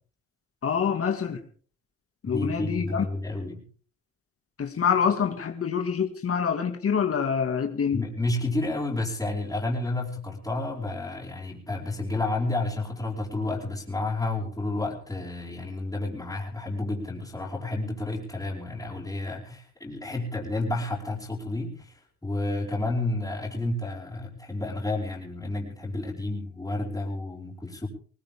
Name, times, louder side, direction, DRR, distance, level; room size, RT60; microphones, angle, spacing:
voice 1, 0.6-1.4 2.2-3.1 4.6-8.0, left 7 dB, 50° left, 4 dB, 2.2 m, -26 dB
voice 2, 2.2-3.6 7.9-27.9, left 2 dB, 10° left, -6 dB, 5.2 m, -31 dB
20.0 x 19.0 x 3.7 m, 0.43 s
cardioid pair, 90°, 30 cm